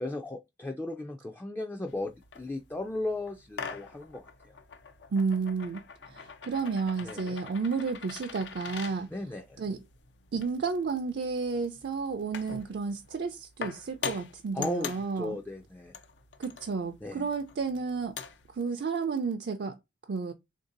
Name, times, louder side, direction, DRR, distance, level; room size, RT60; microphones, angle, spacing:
voice 1, 0.0-4.5 7.0-7.4 9.1-9.6 14.5-16.0 17.0-17.3, left 2 dB, 10° left, 0.3 m, -36 dB
sound 1, 1.9-18.6, left 6 dB, 90° left, 0.5 m, -44 dB
voice 2, 5.1-9.1 9.6-9.8 10.3-15.4 16.4-18.2 18.5-19.8 20.1-20.3, right 4 dB, 65° right, 0.4 m, -32 dB
3.3 x 2.7 x 3.8 m
head